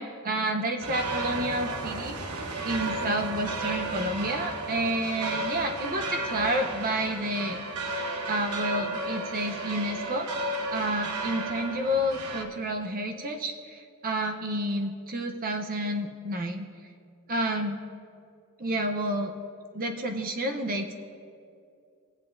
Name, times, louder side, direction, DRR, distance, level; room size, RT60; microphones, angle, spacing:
voice 1, 0.0-2.2 2.6-7.6 8.3-10.3 10.7-16.7 17.3-17.8 18.6-19.3 19.7-20.9, right 1 dB, 40° right, 5 dB, 0.7 m, -30 dB
sound 1, 0.8-12.4, right 2 dB, 85° right, 1.1 m, -33 dB
20.0 x 8.2 x 2.6 m, 2.4 s
head